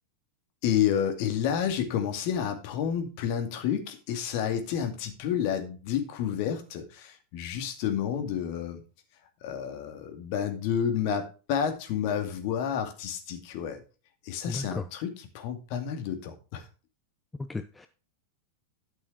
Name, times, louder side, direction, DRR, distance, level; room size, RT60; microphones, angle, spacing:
voice 1, 0.6-8.8 9.4-13.8 14.2-16.6, left 8 dB, 45° left, 5 dB, 2.2 m, -30 dB
voice 2, 14.5-14.9 17.4-17.9, left 3 dB, 10° left, 9 dB, 0.6 m, -34 dB
12.5 x 6.2 x 4.7 m, 0.34 s
figure-of-eight pair, 90°, 0 cm